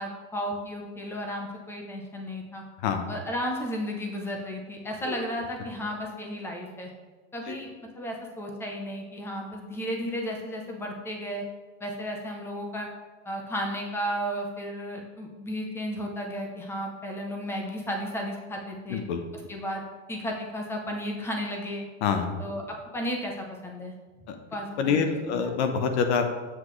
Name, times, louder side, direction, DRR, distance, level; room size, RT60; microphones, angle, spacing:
voice 1, 0.0-2.6 3.1-6.9 7.3-11.5 11.8-12.9 13.2-19.0 19.3-19.8 20.1-21.8 22.4-23.9 24.5-25.0 25.3-25.5, equal, 5° left, 1 dB, 0.7 m, -34 dB
voice 2, 18.9-19.2 22.0-22.3 24.3-24.4 24.8-26.3, left 6 dB, 65° left, 6 dB, 1.0 m, -26 dB
7.7 x 5.8 x 3.2 m, 1.3 s
supercardioid pair, 155°, 37 cm